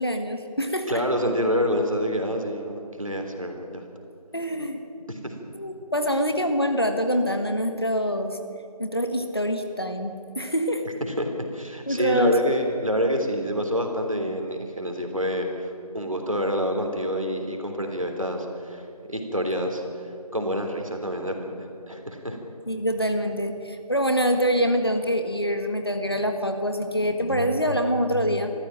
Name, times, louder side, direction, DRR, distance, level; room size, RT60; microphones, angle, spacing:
voice 1, 0.0-0.9 4.3-4.8 5.6-8.4 8.8-10.8 11.9-12.4 22.7-28.5, equal, 40° left, 6 dB, 1.6 m, -25 dB
voice 2, 0.9-3.8 5.1-5.4 10.8-19.8 20.3-21.5 21.9-22.4, equal, 55° right, 3 dB, 3.5 m, -27 dB
22.5 x 14.5 x 9.0 m, 2.7 s
figure-of-eight pair, 175°, 20 cm